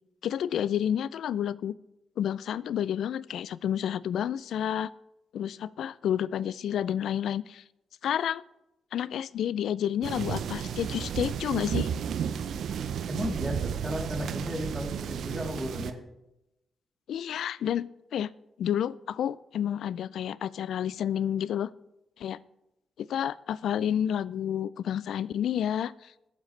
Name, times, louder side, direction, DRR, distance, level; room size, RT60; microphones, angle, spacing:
voice 1, 0.2-1.7 2.2-4.9 5.3-7.6 8.0-8.4 8.9-11.9 17.1-18.3 18.6-21.7 22.2-22.4 23.0-26.1, left 9 dB, 70° left, 21 dB, 0.3 m, -30 dB
sound 1, 10.0-15.9, right 8 dB, 70° right, 0.6 m, -32 dB
voice 2, 13.1-16.0, equal, 10° right, -1 dB, 3.2 m, -34 dB
21.5 x 7.3 x 3.2 m, 0.92 s
hypercardioid pair, 45°, 0 cm